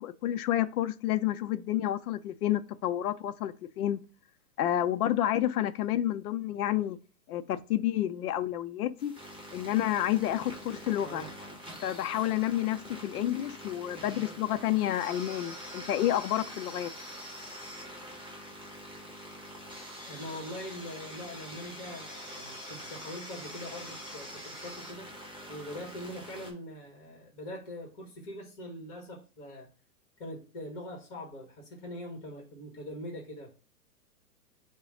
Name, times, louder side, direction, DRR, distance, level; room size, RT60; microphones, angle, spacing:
voice 1, 0.0-4.0 4.6-7.0 7.3-9.2 9.5-11.2 11.8-16.9, left 12 dB, 75° left, 0.6 m, -29 dB
sound 1, 9.0-26.5, equal, 5° right, 2.0 m, -45 dB
voice 2, 11.0-11.4 20.0-25.1 25.5-29.7 30.2-33.5, left 1 dB, 25° left, 1.3 m, -42 dB
4.8 x 2.2 x 4.8 m
hypercardioid pair, 155°, 45 cm